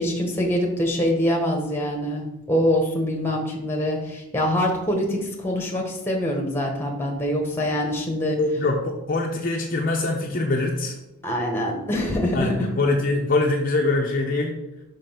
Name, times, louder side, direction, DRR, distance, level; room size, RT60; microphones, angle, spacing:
voice 1, 0.0-8.6 11.2-12.7, equal, 10° left, 1 dB, 1.3 m, -24 dB
voice 2, 8.4-11.0 12.3-14.6, left 2 dB, 40° left, 0 dB, 0.8 m, -23 dB
5.7 x 5.2 x 5.7 m, 0.90 s
head